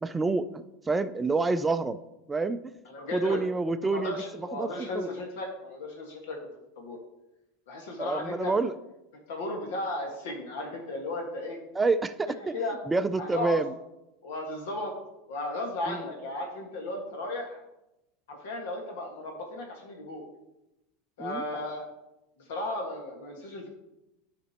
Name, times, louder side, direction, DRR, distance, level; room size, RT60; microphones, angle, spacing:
voice 1, 0.0-2.0 2.3-2.6 3.1-5.1 8.0-8.7 11.7-12.5 12.9-13.7 15.9-16.0 21.2-21.4, right 3 dB, 15° right, 11 dB, 0.3 m, -28 dB
voice 2, 2.8-3.4 3.9-6.4 6.7-7.0 7.7-8.5 9.3-11.6 12.4-12.8 13.2-13.6 14.2-15.0 15.3-17.6 18.3-20.2 21.2-21.9 22.5-23.7, left 2 dB, 85° left, 1 dB, 1.6 m, -35 dB
13.0 x 5.1 x 2.9 m, 0.92 s
supercardioid pair, 135°, 0 cm